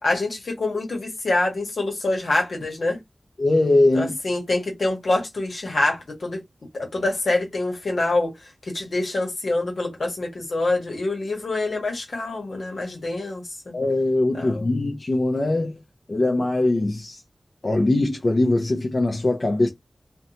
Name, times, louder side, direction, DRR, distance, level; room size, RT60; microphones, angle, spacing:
voice 1, 0.0-3.0 3.9-6.4 6.7-8.3 8.6-13.7 14.3-14.7, left 2 dB, 85° left, 1.0 m, -25 dB
voice 2, 3.4-4.2 13.7-15.8 16.1-17.2 17.6-19.7, left 2 dB, 55° left, 0.5 m, -21 dB
2.6 x 2.1 x 2.7 m
wide cardioid pair, 60°, 0 cm